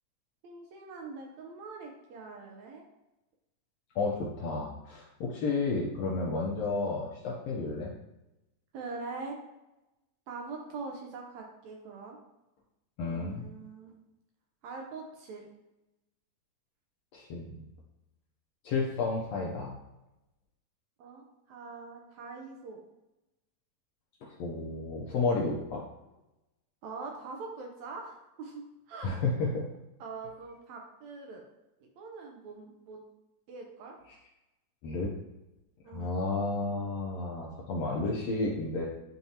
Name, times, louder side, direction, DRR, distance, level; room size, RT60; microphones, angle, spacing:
voice 1, 0.4-2.8 8.7-9.4 10.3-12.2 13.1-13.9 14.6-15.5 21.0-22.8 26.8-29.2 30.0-31.4 31.8-33.0 33.5-33.9 35.8-36.2, right 4 dB, 75° right, 1 dB, 1.7 m, -43 dB
voice 2, 3.9-7.9 13.0-13.5 17.1-17.7 18.6-19.8 24.2-25.8 29.0-29.6 34.8-35.1 35.9-38.8, left 3 dB, 80° left, -3 dB, 1.4 m, -32 dB
10.5 x 3.5 x 2.8 m, 0.96 s
omnidirectional pair, 3.9 m